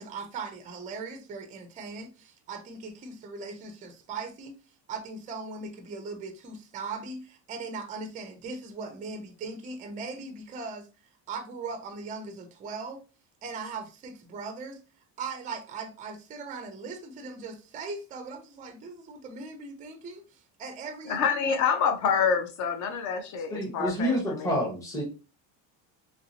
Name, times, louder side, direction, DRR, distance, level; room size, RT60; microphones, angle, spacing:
voice 1, 0.0-4.6 4.9-10.9 11.3-13.0 13.4-14.8 15.2-21.6, right 4 dB, 20° right, 0.4 m, -39 dB
voice 2, 21.1-24.6, left 6 dB, 40° left, 0.6 m, -27 dB
voice 3, 23.5-25.0, equal, 5° left, 0.8 m, -28 dB
3.1 x 2.7 x 2.7 m
cardioid pair, 150°, 44 cm